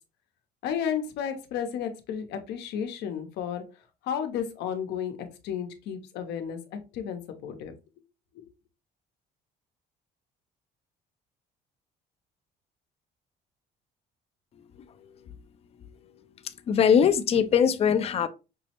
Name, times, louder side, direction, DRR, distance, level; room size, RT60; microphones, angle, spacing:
voice 1, 0.6-3.6 4.0-7.7 8.3-8.5, left 8 dB, 80° left, 0.7 m, -33 dB
voice 2, 16.7-18.3, left 7 dB, 35° left, 0.4 m, -21 dB
5.3 x 2.0 x 2.8 m
cardioid pair, 110°, 17 cm